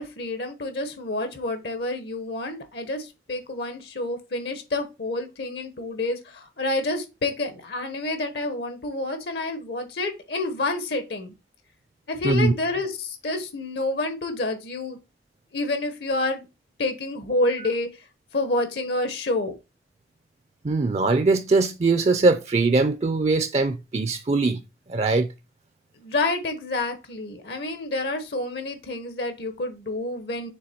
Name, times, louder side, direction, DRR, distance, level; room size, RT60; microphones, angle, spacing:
voice 1, 0.0-11.3 12.1-15.0 15.5-16.5 16.8-17.9 18.3-19.5 26.0-30.5, left 2 dB, 70° left, 1.0 m, -28 dB
voice 2, 20.6-24.6 24.9-25.3, right 3 dB, 35° right, 0.4 m, -21 dB
6.7 x 3.4 x 4.3 m
head